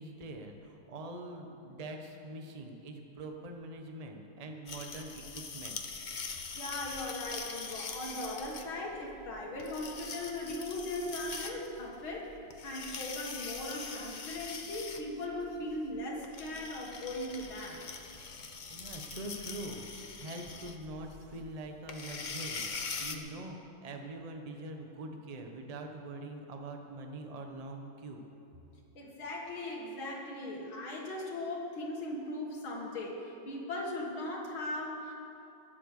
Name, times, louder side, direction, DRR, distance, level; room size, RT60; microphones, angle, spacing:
voice 1, 0.0-5.8 18.7-28.2, right 2 dB, 25° right, 3 dB, 0.9 m, -44 dB
sound 1, 4.7-23.2, left 5 dB, 70° left, 0.4 m, -43 dB
voice 2, 6.6-12.3 12.6-17.9 29.0-35.1, left 1 dB, 85° left, -2 dB, 2.5 m, -39 dB
21.5 x 7.7 x 6.7 m, 2.9 s
omnidirectional pair, 2.2 m